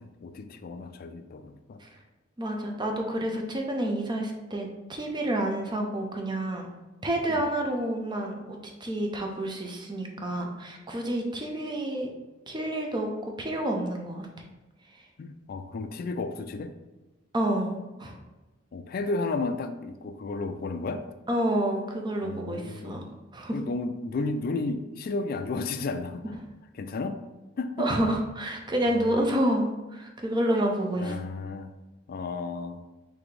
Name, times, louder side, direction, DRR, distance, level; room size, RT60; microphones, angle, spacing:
voice 1, 0.0-1.8 7.3-7.5 15.2-16.8 18.7-21.1 22.2-23.0 23.5-26.3 26.7-27.2 27.6-27.9 28.9-29.1 31.0-31.7 32.1-32.8, left 3 dB, 50° left, 9 dB, 0.3 m, -33 dB
voice 2, 2.4-6.7 7.0-12.1 12.5-13.1 13.4-14.3 17.3-18.2 21.3-23.6 27.8-31.1, right 1 dB, 25° right, 2 dB, 0.6 m, -29 dB
4.0 x 3.3 x 3.3 m, 1.1 s
head